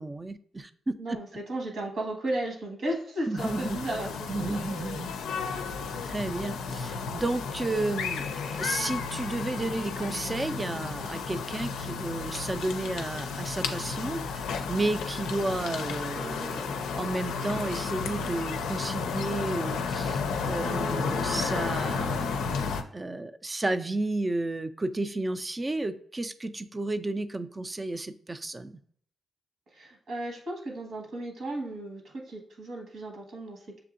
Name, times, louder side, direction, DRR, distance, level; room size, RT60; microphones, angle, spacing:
voice 1, 0.0-1.4 3.3-3.8 4.3-5.1 6.0-22.7 22.9-28.8, right 2 dB, 30° right, 11 dB, 0.4 m, -32 dB
voice 2, 1.0-4.1 4.4-4.6 29.7-33.8, right 1 dB, 70° right, 1 dB, 1.5 m, -34 dB
sound 1, 3.4-22.8, left 5 dB, 85° left, 0.4 m, -32 dB
6.7 x 2.7 x 2.5 m, 0.62 s
supercardioid pair, 55°, 0 cm